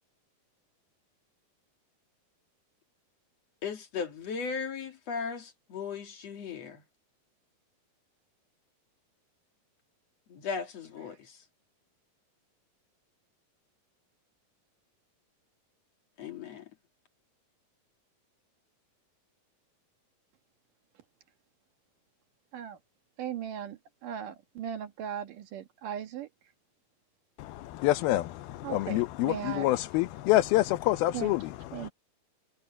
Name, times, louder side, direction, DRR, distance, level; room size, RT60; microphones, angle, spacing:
voice 1, 3.6-6.8 10.3-11.4 16.2-16.7, left 5 dB, 50° left, 2.7 m, -37 dB
voice 2, 23.2-26.3 28.6-29.7 31.1-31.3 31.7-31.9, right 9 dB, 65° right, 2.8 m, -38 dB
voice 3, 27.4-31.9, left 16 dB, 85° left, 2.8 m, -27 dB
omnidirectional pair, 4.2 m